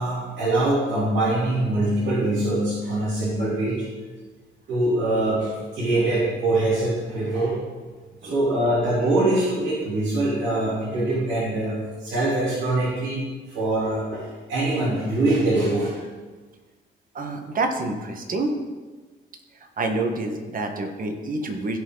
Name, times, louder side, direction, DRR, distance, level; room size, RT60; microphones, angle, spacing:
voice 1, 0.0-3.9 4.7-7.6 8.2-13.2 13.5-16.0, right 2 dB, 70° right, -9 dB, 3.4 m, -23 dB
voice 2, 17.1-18.5 19.5-21.8, right 2 dB, 45° right, 5 dB, 1.5 m, -27 dB
16.0 x 5.6 x 4.0 m, 1.3 s
cardioid pair, 90°, 20 cm